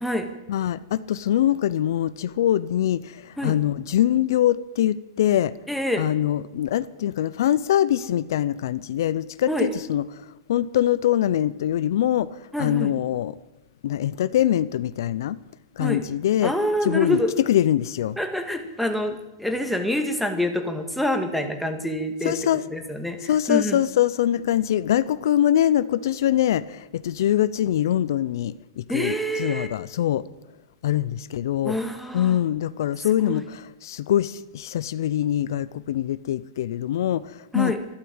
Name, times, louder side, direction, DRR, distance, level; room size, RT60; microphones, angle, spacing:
voice 1, 0.5-5.5 6.0-13.4 13.8-15.4 15.8-16.5 16.8-17.2 17.5-18.2 22.2-22.6 23.2-30.3 30.8-31.8 32.1-37.7, left 11 dB, 70° left, 0.6 m, -23 dB
voice 2, 5.7-6.1 9.5-9.7 12.5-12.9 15.8-16.0 16.4-17.3 18.2-22.4 22.7-23.8 28.9-29.7 31.6-32.4 33.2-33.4 37.5-37.8, left 1 dB, ahead, 1.8 m, -26 dB
13.0 x 12.0 x 8.8 m
hypercardioid pair, 140°, 2 cm